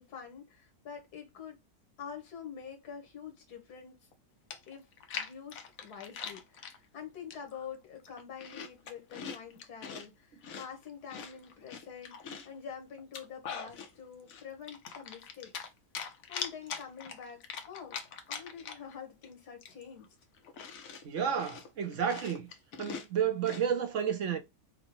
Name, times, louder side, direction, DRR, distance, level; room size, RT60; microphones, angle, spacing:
voice 1, 0.0-1.6 2.0-4.0 4.7-4.9 5.1-15.6 16.3-18.0 18.3-20.1, left 7 dB, 85° left, 1.8 m, -46 dB
Chewing mastication, 4.1-4.2 4.5-6.8 7.3-7.7 8.0-10.1 10.4-12.6 13.0-13.9 14.3-15.7 15.9-18.9 19.2-19.3 19.6-23.7, left 6 dB, 65° left, 1.1 m, -42 dB
voice 2, 21.0-22.5 22.8-24.4, right 8 dB, 60° right, 0.9 m, -31 dB
6.3 x 2.1 x 3.0 m
omnidirectional pair, 1.6 m